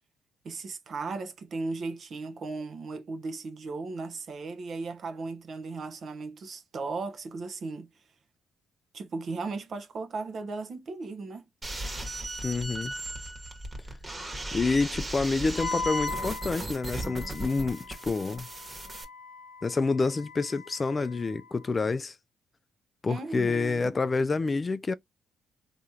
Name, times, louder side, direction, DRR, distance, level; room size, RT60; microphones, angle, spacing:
voice 1, 0.4-7.9 8.9-11.5 23.1-24.0, right 3 dB, 55° right, 0.9 m, -36 dB
sound 1, 11.6-19.0, right 1 dB, 25° right, 1.5 m, -37 dB
voice 2, 12.4-12.9 14.5-18.5 19.6-22.2 23.0-24.9, left 3 dB, 30° left, 0.3 m, -28 dB
Wind instrument woodwind instrument, 15.5-21.7, left 4 dB, 65° left, 1.0 m, -39 dB
3.5 x 3.0 x 2.7 m
supercardioid pair, 70°, 0 cm